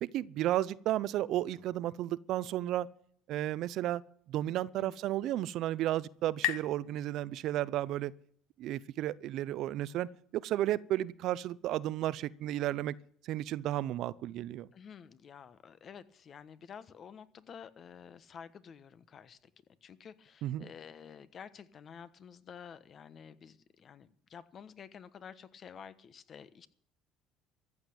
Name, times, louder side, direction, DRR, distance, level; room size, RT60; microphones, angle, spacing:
voice 1, 0.0-2.9 3.3-4.0 4.3-8.1 8.6-12.9 13.2-14.7 20.4-20.6, right 13 dB, 65° right, 0.6 m, -33 dB
sound 1, 5.0-8.3, left 15 dB, 85° left, 0.9 m, -40 dB
voice 2, 14.7-19.4 19.8-26.7, left 7 dB, 45° left, 1.2 m, -50 dB
14.5 x 7.9 x 8.9 m
supercardioid pair, 100°, 0 cm